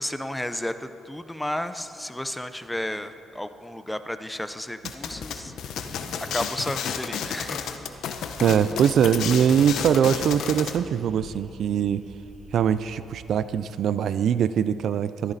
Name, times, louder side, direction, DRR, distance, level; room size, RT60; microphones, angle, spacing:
voice 1, 0.0-5.5 6.2-7.8, left 1 dB, 5° left, 11 dB, 0.7 m, -32 dB
sound 1, 4.9-10.8, left 7 dB, 75° left, 0.9 m, -32 dB
Wind / Thunder, 5.0-13.1 13.4-13.5, left 4 dB, 45° left, 1.3 m, -47 dB
sound 2, 7.9-13.4, right 2 dB, 25° right, 2.3 m, -49 dB
voice 2, 8.4-12.0 12.5-15.3, right 8 dB, 65° right, 14 dB, 0.4 m, -22 dB
14.5 x 14.0 x 4.2 m, 2.6 s
cardioid pair, 90°, 0 cm